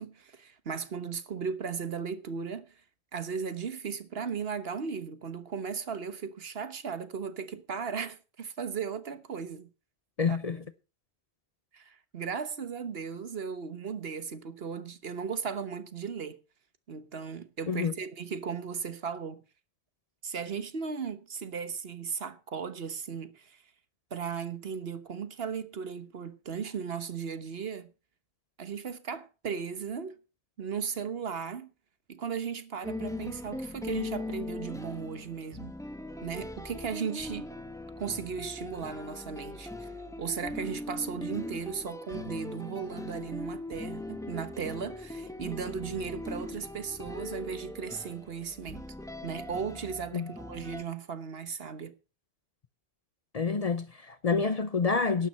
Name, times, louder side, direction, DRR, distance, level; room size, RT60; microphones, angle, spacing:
voice 1, 0.0-2.7 3.1-9.7 10.3-10.6 11.7-16.4 16.9-19.4 20.2-23.6 24.1-27.9 28.6-30.2 30.6-31.7 32.1-35.8 36.2-37.5 38.0-39.9 40.2-48.9 49.2-51.9, right 6 dB, 65° right, 1.3 m, -36 dB
voice 2, 10.2-10.6 17.7-18.0 50.1-50.3 53.3-55.3, left 4 dB, 40° left, 0.7 m, -28 dB
sound 1, 32.8-50.8, left 2 dB, 5° left, 1.1 m, -40 dB
12.0 x 9.3 x 5.6 m
omnidirectional pair, 1.1 m